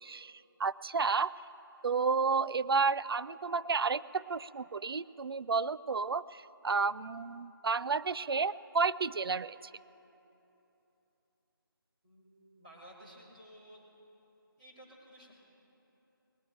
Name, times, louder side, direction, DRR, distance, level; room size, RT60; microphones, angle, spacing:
voice 1, 0.0-1.3 1.8-9.6, right 4 dB, 85° right, 17 dB, 0.4 m, -31 dB
voice 2, 12.0-13.8 14.6-15.3, equal, 20° right, -8 dB, 2.6 m, -55 dB
19.5 x 12.5 x 4.5 m, 3.0 s
figure-of-eight pair, 180°, 12 cm